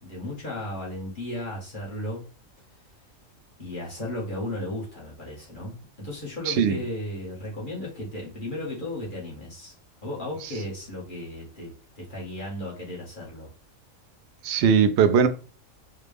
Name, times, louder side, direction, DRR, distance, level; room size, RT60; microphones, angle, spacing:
voice 1, 0.0-2.2 3.6-9.7 10.0-13.5, left 1 dB, 35° left, 1.7 m, -35 dB
voice 2, 6.5-6.8 10.4-10.5 14.4-15.3, right 7 dB, 65° right, 0.7 m, -20 dB
4.5 x 2.5 x 3.3 m
omnidirectional pair, 1.4 m